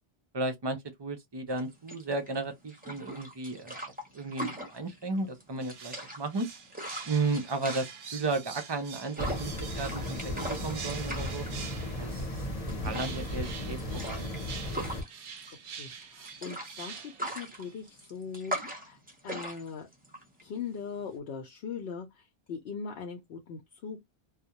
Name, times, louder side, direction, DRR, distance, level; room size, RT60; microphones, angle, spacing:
voice 1, 0.3-3.8 4.1-6.5 7.1-11.5 12.0-12.5 12.8-13.8 14.0-14.3, right 3 dB, 45° right, 0.3 m, -34 dB
sound 1, 1.5-21.2, right 1 dB, 10° right, 0.6 m, -41 dB
sound 2, 5.6-12.2 12.9-17.7 18.0-18.1, right 6 dB, 65° right, 0.7 m, -45 dB
sound 3, 9.2-15.0, left 1 dB, 40° left, 0.8 m, -35 dB
voice 2, 15.7-18.6 18.8-19.0 19.2-19.9 20.4-22.1 22.5-24.0, left 6 dB, 75° left, 0.8 m, -40 dB
2.3 x 2.0 x 2.7 m
omnidirectional pair, 1.0 m